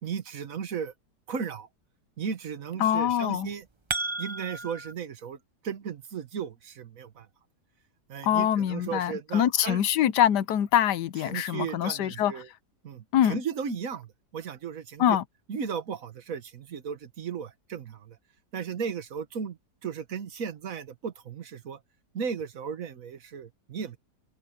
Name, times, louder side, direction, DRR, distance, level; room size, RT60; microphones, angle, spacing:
voice 1, 0.0-0.9 1.3-1.7 2.2-3.6 4.2-5.4 5.6-7.3 8.1-9.8 11.3-12.5 12.8-13.0 13.3-15.2 15.5-18.2 18.5-21.8 22.1-24.0, right 6 dB, 55° right, 1.7 m, -35 dB
voice 2, 2.8-3.5 8.2-12.4 13.1-13.4 15.0-15.2, left 10 dB, 80° left, 1.4 m, -24 dB
sound 1, 3.4-4.9, right 3 dB, 25° right, 0.6 m, -33 dB
omnidirectional pair, 1.8 m